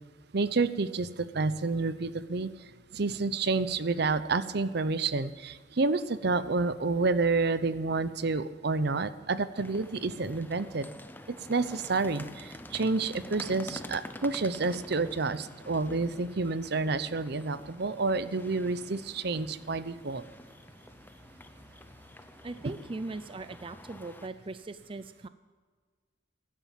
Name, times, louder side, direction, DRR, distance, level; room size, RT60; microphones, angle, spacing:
voice 1, 0.3-1.1 1.3-2.5 2.9-10.9 11.3-20.2, right 3 dB, 65° right, 14 dB, 0.8 m, -29 dB
sound 1, 9.6-24.3, left 1 dB, 10° left, 0.8 m, -48 dB
voice 2, 22.4-25.3, right 3 dB, 30° right, 12 dB, 0.5 m, -39 dB
16.5 x 11.5 x 7.3 m, 1.5 s
head